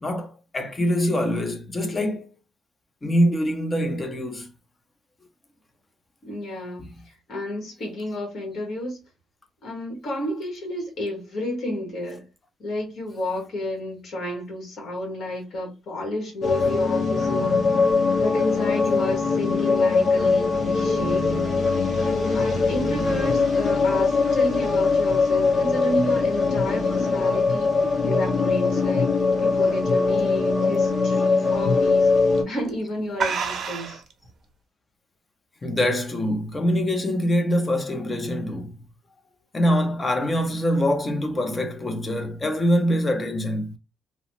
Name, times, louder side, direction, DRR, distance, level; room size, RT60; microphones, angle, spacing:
voice 1, 0.0-2.3 3.0-4.5 16.6-16.7 35.6-38.7 39.5-43.8, equal, 25° left, 0.6 m, -24 dB
voice 2, 6.2-9.0 9.6-12.2 12.6-17.6 18.2-21.3 22.3-27.7 28.0-29.1 29.4-32.1 32.5-34.0, left 1 dB, 55° left, 1.4 m, -31 dB
sound 1, 16.4-32.4, left 4 dB, 40° left, 1.0 m, -21 dB
sound 2, 27.0-30.1 30.6-30.9 31.2-31.3 32.2-32.4 32.7-32.8 33.2-34.1, right 6 dB, 55° right, 0.6 m, -31 dB
3.0 x 2.0 x 2.9 m
cardioid pair, 110°, 0 cm